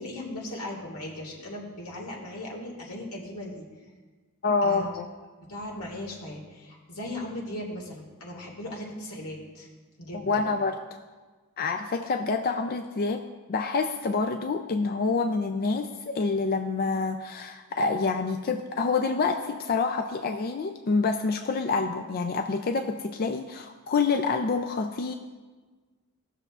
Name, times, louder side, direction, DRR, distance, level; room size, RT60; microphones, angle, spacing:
voice 1, 0.0-3.7 4.6-4.9 5.5-9.7 10.0-10.4, left 1 dB, 85° left, -1 dB, 1.9 m, -38 dB
voice 2, 4.4-5.0 10.2-10.7 11.6-13.2 13.5-25.1, left 4 dB, 45° left, 5 dB, 0.4 m, -27 dB
16.5 x 6.7 x 2.4 m, 1.4 s
head